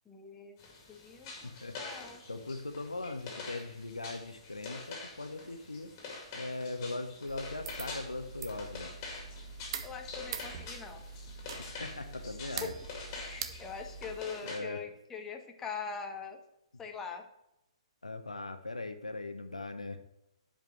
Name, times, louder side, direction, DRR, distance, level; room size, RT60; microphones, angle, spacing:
voice 1, 0.1-1.5 1.8-2.2 9.8-11.0 12.5-12.8 13.2-16.4 16.8-17.3, left 5 dB, 10° left, 4 dB, 0.8 m, -43 dB
sound 1, 0.6-14.6, left 3 dB, 30° left, 2.3 m, -46 dB
voice 2, 1.4-1.8 2.3-5.9 6.3-8.9 11.6-12.7 14.4-14.8 18.0-20.0, left 2 dB, 80° left, 8 dB, 0.8 m, -40 dB
sound 2, 7.3-14.2, right 6 dB, 45° right, 0.8 m, -44 dB
7.5 x 5.2 x 6.3 m, 0.86 s
figure-of-eight pair, 120°, 3 cm